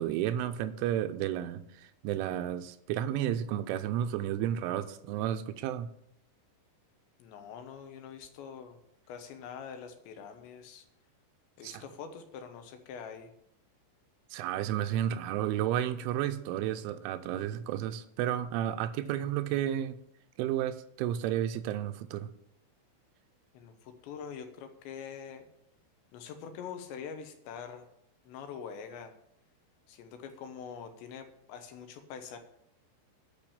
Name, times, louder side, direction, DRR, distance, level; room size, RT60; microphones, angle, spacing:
voice 1, 0.0-5.9 11.6-11.8 14.3-20.0 20.4-22.3, right 11 dB, 85° right, 11 dB, 3.1 m, -32 dB
voice 2, 7.2-8.8 9.1-10.9 11.6-13.3 23.5-25.5 26.1-27.9 28.2-29.1 29.9-32.4, left 7 dB, 75° left, 7 dB, 3.0 m, -44 dB
10.5 x 5.8 x 8.5 m, 0.75 s
omnidirectional pair, 5.6 m